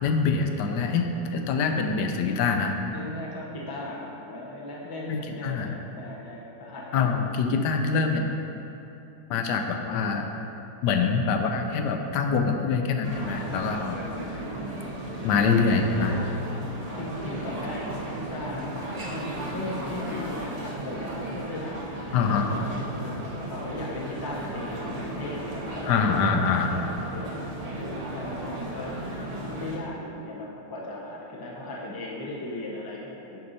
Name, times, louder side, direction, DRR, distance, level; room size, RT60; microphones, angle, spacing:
voice 1, 0.0-2.8 5.1-5.7 6.9-8.2 9.3-10.3 10.8-14.0 15.2-16.2 22.1-22.5 25.8-26.8, left 5 dB, 85° left, 4 dB, 1.2 m, -25 dB
voice 2, 2.9-7.2 16.9-18.7 19.0-26.3 26.7-26.8 27.1-27.4 27.8-33.4, left 1 dB, 25° left, -4 dB, 0.5 m, -37 dB
sound 1, 13.0-29.8, right 1 dB, 40° right, 0.5 m, -35 dB
6.5 x 5.4 x 4.0 m, 2.9 s
omnidirectional pair, 1.8 m